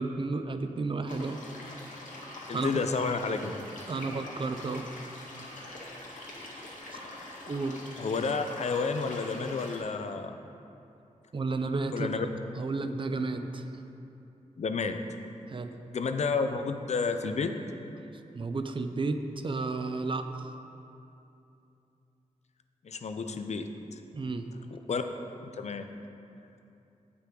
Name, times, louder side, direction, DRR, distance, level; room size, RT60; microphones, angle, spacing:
voice 1, 0.0-1.4 2.5-2.7 3.9-4.8 6.9-7.0 7.5-7.7 11.3-12.2 12.6-13.7 15.5-15.7 18.3-20.5 24.1-24.5, right 3 dB, 40° right, 8 dB, 0.6 m, -32 dB
sound 1, 1.1-9.8, left 1 dB, 80° left, 1.9 m, -44 dB
voice 2, 2.5-3.6 8.0-10.4 11.9-12.3 14.6-15.0 15.9-17.6 22.8-23.7 24.7-25.0 25.5-25.9, left 4 dB, 60° left, 7 dB, 0.6 m, -30 dB
17.5 x 6.0 x 3.8 m, 2.8 s
wide cardioid pair, 115°, 13 cm